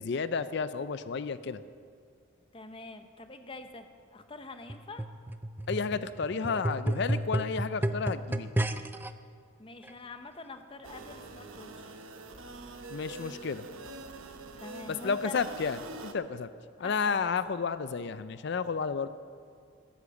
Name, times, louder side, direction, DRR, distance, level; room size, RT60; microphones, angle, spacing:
voice 1, 0.0-1.6 5.7-8.5 12.9-13.6 14.9-16.5 16.8-19.1, left 5 dB, 55° left, 13 dB, 0.4 m, -32 dB
voice 2, 2.5-5.1 9.6-12.0 14.6-15.4 16.8-17.3, left 3 dB, 25° left, 8 dB, 0.8 m, -46 dB
sound 1, 4.7-9.1 9.9-10.0, right 1 dB, 10° right, 0.3 m, -32 dB
sound 2, 10.8-16.1, right 3 dB, 80° right, 1.0 m, -45 dB
13.5 x 10.5 x 7.0 m, 2.4 s
head